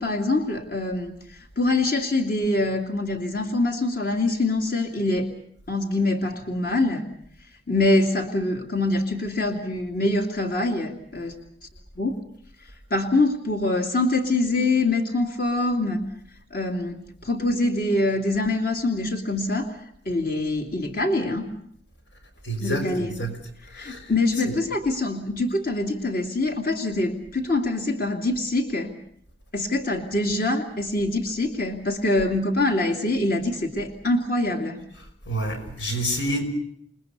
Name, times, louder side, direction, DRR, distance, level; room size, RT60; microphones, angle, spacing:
voice 1, 0.0-5.3 5.7-7.0 7.7-11.3 12.0-12.1 12.9-16.0 16.5-19.8 20.1-21.5 22.6-23.2 23.7-28.9 29.5-34.8, left 2 dB, 50° left, 4 dB, 2.6 m, -24 dB
voice 2, 22.4-23.4 23.7-24.1 24.5-24.6 35.3-36.4, right 1 dB, 80° left, 5 dB, 5.9 m, -28 dB
29.0 x 20.5 x 6.8 m, 0.68 s
head